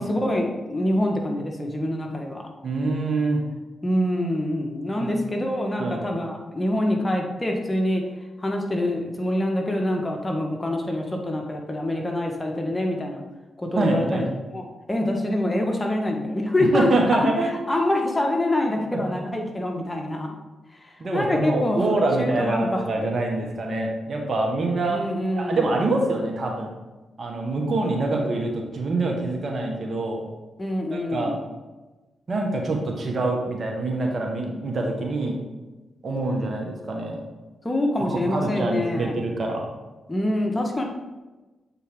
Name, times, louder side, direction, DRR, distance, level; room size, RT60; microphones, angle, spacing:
voice 1, 0.0-2.4 3.8-8.0 8.4-13.2 13.6-14.2 14.5-14.6 14.9-17.3 17.7-20.3 20.8-22.8 24.9-25.8 30.6-31.4 37.6-39.2 40.1-40.8, left 1 dB, 25° left, 1 dB, 1.5 m, -25 dB
voice 2, 2.6-3.4 5.0-5.1 5.8-6.0 13.7-14.3 16.6-17.6 18.9-19.1 21.0-25.0 25.4-26.7 27.2-30.2 30.9-31.4 32.3-35.4 36.0-37.2 38.1-39.6, right 2 dB, 55° right, 1 dB, 1.5 m, -25 dB
8.1 x 4.5 x 3.7 m, 1.1 s
hypercardioid pair, 40°, 0 cm